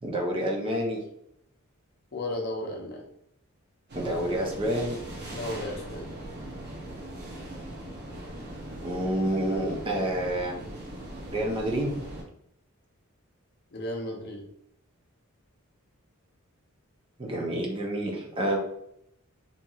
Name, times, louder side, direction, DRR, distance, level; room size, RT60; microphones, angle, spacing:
voice 1, 0.0-1.0 3.9-5.0 8.8-10.6 11.3-11.9 17.2-18.6, right 1 dB, 25° right, 0 dB, 0.5 m, -28 dB
voice 2, 2.1-3.0 5.3-6.1 13.7-14.4, left 1 dB, 50° left, 1 dB, 0.6 m, -34 dB
sound 1, 3.9-12.2, right 1 dB, 50° right, 0.9 m, -40 dB
2.8 x 2.7 x 2.3 m, 0.73 s
head